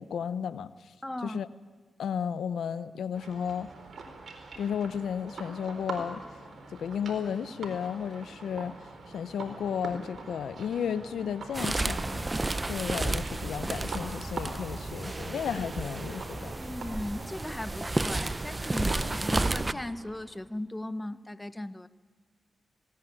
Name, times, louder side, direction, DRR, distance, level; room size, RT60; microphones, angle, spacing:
voice 1, 0.0-0.9 1.2-1.5 2.0-3.7 4.6-6.2 6.7-8.8 9.1-12.3 12.6-16.5, left 7 dB, 80° left, 15 dB, 0.7 m, -33 dB
voice 2, 1.0-1.4 16.6-21.9, left 1 dB, 15° left, 13 dB, 1.0 m, -37 dB
sound 1, 3.1-20.4, right 3 dB, 65° right, 4.3 m, -44 dB
sound 2, 11.5-19.7, right 2 dB, 25° right, 0.7 m, -32 dB
19.5 x 18.0 x 9.8 m, 1.4 s
cardioid pair, 55°, 0 cm